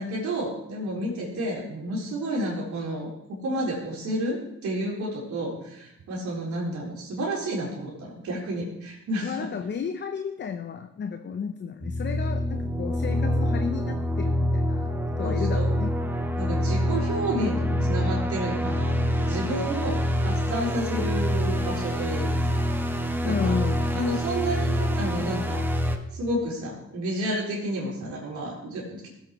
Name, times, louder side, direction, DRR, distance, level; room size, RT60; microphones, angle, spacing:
voice 1, 0.0-3.1 3.4-9.5 15.2-15.7 16.3-23.0 23.2-23.5 23.9-25.6 26.1-29.1, right 1 dB, 70° right, -5 dB, 4.0 m, -31 dB
voice 2, 9.2-16.1 23.2-24.0, left 6 dB, 35° left, 8 dB, 0.6 m, -33 dB
sound 1, 11.8-26.0, equal, 5° right, 1.0 m, -26 dB
15.5 x 8.1 x 3.1 m, 0.82 s
cardioid pair, 90°, 30 cm